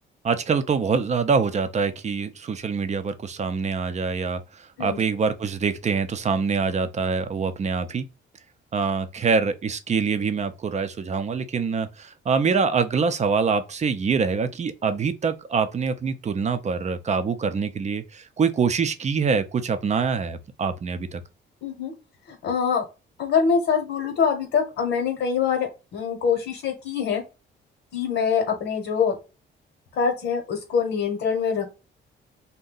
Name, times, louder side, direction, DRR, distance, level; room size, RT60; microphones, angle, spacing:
voice 1, 0.2-8.1 8.7-21.2, right 5 dB, 35° right, 0.5 m, -25 dB
voice 2, 21.6-21.9 22.3-22.8 23.2-27.2 27.9-29.1 29.9-31.6, left 6 dB, 70° left, 1.0 m, -24 dB
2.7 x 2.2 x 3.8 m
cardioid pair, 90°, 20 cm